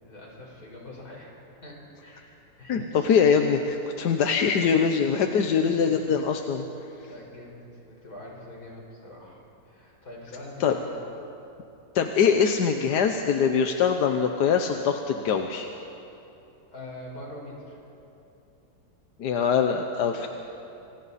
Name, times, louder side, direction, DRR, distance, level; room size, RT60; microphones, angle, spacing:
voice 1, 0.0-1.4 1.6-3.1 7.0-11.0 16.7-17.8 20.1-20.3, left 1 dB, 65° left, -2 dB, 5.3 m, -43 dB
voice 2, 2.7-6.6 10.6-10.7 11.9-15.7 19.2-20.3, left 6 dB, 80° left, 5 dB, 1.5 m, -23 dB
27.5 x 25.5 x 4.2 m, 2.9 s
omnidirectional pair, 1.8 m